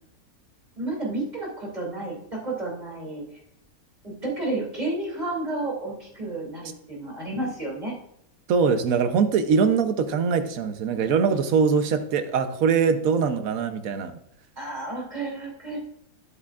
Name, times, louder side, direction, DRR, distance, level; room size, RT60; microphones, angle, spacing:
voice 1, 0.8-3.2 4.0-7.9 14.6-15.8, right 2 dB, 30° right, -3 dB, 2.8 m, -31 dB
voice 2, 8.5-14.1, right 5 dB, 70° right, 9 dB, 1.2 m, -22 dB
10.0 x 8.3 x 2.4 m, 0.75 s
omnidirectional pair, 1.6 m